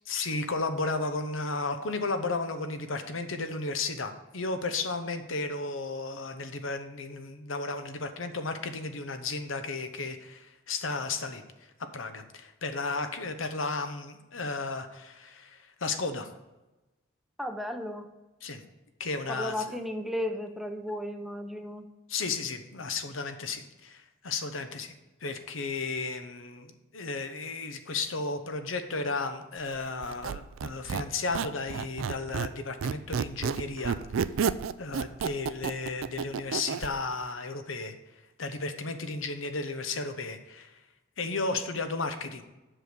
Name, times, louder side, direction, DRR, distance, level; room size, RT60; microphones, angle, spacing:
voice 1, 0.1-11.4 11.9-16.3 18.4-18.6 19.0-19.7 22.1-24.9 25.2-34.0 34.8-37.9 38.4-40.7 41.2-42.4, left 3 dB, 80° left, 8 dB, 0.9 m, -34 dB
voice 2, 17.4-18.1 19.3-21.8, left 1 dB, ahead, 5 dB, 0.6 m, -34 dB
Squeak, 30.0-32.6 32.8-36.9, right 6 dB, 80° right, 0.4 m, -31 dB
7.8 x 6.3 x 5.1 m, 1.1 s
head